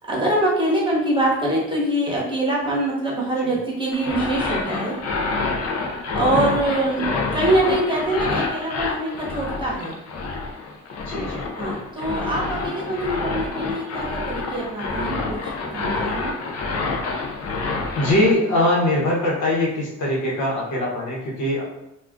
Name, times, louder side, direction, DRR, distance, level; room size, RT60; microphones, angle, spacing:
voice 1, 0.1-5.0 6.1-9.9 11.6-16.3, right 1 dB, 15° right, -4 dB, 1.0 m, -24 dB
sound 1, 3.9-18.3, left 3 dB, 55° left, 0.6 m, -27 dB
voice 2, 11.0-11.4 18.0-21.6, left 1 dB, 80° left, -4 dB, 1.0 m, -22 dB
2.4 x 2.4 x 3.5 m, 0.84 s
cardioid pair, 90°, 30 cm